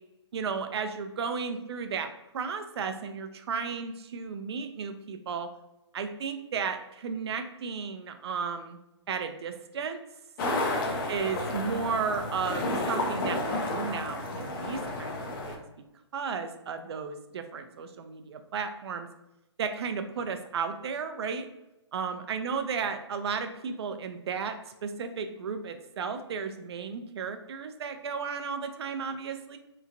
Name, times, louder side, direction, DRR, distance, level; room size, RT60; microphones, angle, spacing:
voice 1, 0.3-2.1 2.3-5.5 5.9-8.8 9.1-10.0 11.1-15.6 16.1-19.1 19.6-21.5 21.9-24.6 24.8-29.6, right 5 dB, 60° right, 8 dB, 0.4 m, -34 dB
sound 1, 10.4-15.6, left 2 dB, 45° left, 0.5 m, -31 dB
2.9 x 2.3 x 2.5 m, 0.91 s
hypercardioid pair, 135°, 15 cm